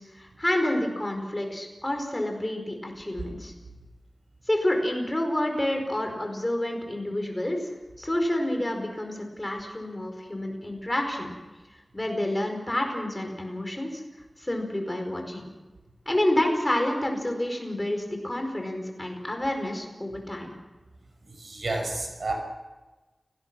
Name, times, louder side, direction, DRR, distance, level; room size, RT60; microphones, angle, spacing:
voice 1, 0.0-3.5 4.5-7.7 8.0-11.3 11.9-14.0 14.4-15.4 16.0-20.6, left 1 dB, 20° left, 3 dB, 4.9 m, -29 dB
voice 2, 21.3-22.4, right 2 dB, 70° right, 3 dB, 5.8 m, -31 dB
29.5 x 18.5 x 6.2 m, 1.2 s
wide cardioid pair, 90°, 0 cm